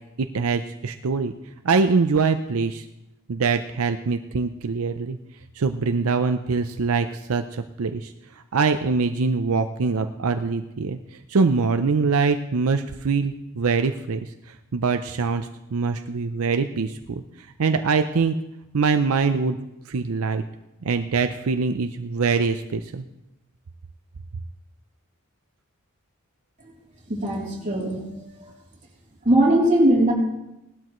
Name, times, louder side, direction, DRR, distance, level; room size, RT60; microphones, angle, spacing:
voice 1, 0.2-1.3 1.6-2.8 3.3-5.2 5.6-8.1 8.5-11.0 11.3-14.3 14.7-17.2 17.6-18.4 18.7-19.6 19.9-20.4 20.8-23.0, right 4 dB, 80° right, 8 dB, 0.5 m, -23 dB
voice 2, 27.1-28.2 29.2-30.1, right 1 dB, 35° right, -4 dB, 3.4 m, -20 dB
18.5 x 12.0 x 3.1 m, 0.92 s
head